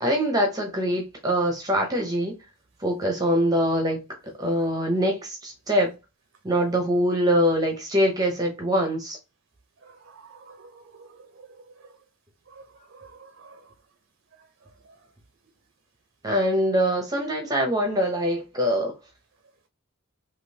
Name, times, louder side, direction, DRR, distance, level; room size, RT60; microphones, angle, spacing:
voice 1, 0.0-2.4 2.8-4.0 4.4-5.9 6.4-9.2 16.2-18.9, equal, 15° right, 0.7 m, -23 dB
voice 2, 9.8-11.5 12.5-13.6, right 4 dB, 55° right, 0.5 m, -49 dB
3.6 x 2.8 x 2.7 m
head